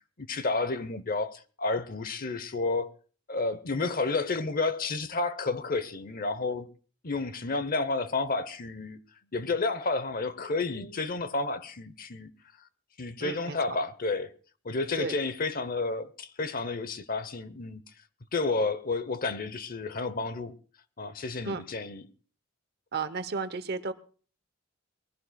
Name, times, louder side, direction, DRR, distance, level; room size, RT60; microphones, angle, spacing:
voice 1, 0.2-2.9 3.3-6.7 7.0-9.0 9.3-12.3 13.0-14.3 14.6-17.8 18.3-20.5 21.0-22.1, left 3 dB, 45° left, 0.8 m, -31 dB
voice 2, 13.2-13.6 15.0-15.2 21.4-21.6 22.9-23.9, right 4 dB, 55° right, 0.9 m, -33 dB
23.0 x 15.5 x 2.3 m
head